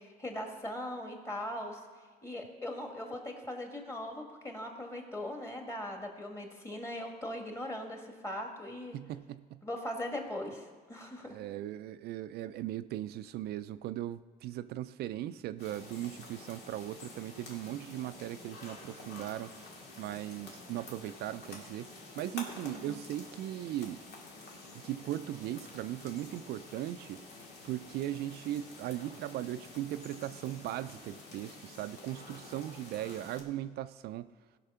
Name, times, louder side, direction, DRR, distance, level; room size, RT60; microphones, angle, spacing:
voice 1, 0.2-1.8 2.2-9.0 9.6-11.4 22.7-23.0, left 1 dB, 15° left, 2 dB, 1.9 m, -40 dB
voice 2, 8.9-9.6 11.3-19.5 20.0-21.9 22.2-24.0 24.7-27.2 27.6-34.3, right 13 dB, 70° right, 12 dB, 0.4 m, -38 dB
sound 1, 15.6-33.4, left 2 dB, 85° left, 2.0 m, -49 dB
16.5 x 5.8 x 5.6 m, 1.5 s
cardioid pair, 110°, 17 cm